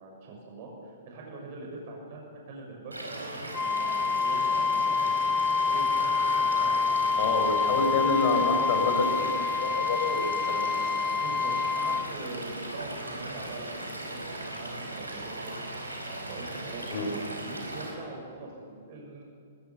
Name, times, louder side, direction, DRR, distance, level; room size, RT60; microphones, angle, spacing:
voice 1, 0.0-5.1 5.6-8.3 11.2-13.7 14.0-15.5 16.3-19.2, right 2 dB, 45° right, -1 dB, 6.3 m, -43 dB
Stream / Liquid, 2.9-17.9, right 1 dB, 85° right, 5.1 m, -38 dB
Wind instrument woodwind instrument, 3.5-12.1, left 5 dB, 10° left, 0.4 m, -27 dB
sound 1, 5.0-14.7, left 2 dB, 80° left, 3.2 m, -45 dB
voice 2, 7.2-10.8 16.9-17.1, left 3 dB, 50° left, 4 dB, 5.1 m, -28 dB
21.0 x 21.0 x 7.2 m, 2.4 s
figure-of-eight pair, 110°, 0 cm